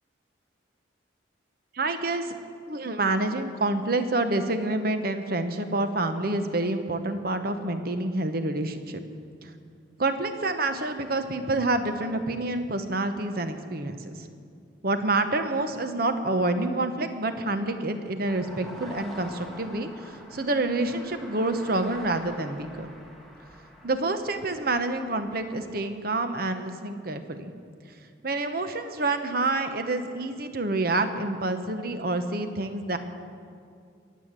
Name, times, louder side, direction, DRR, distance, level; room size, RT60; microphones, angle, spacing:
voice 1, 1.7-2.3 2.7-9.0 9.4-9.5 10.0-14.3 14.8-22.9 23.8-27.5 28.2-33.0, right 2 dB, 50° right, 8 dB, 1.0 m, -28 dB
sound 1, 18.3-25.9, equal, ahead, 1.6 m, -46 dB
22.0 x 8.4 x 7.5 m, 2.3 s
head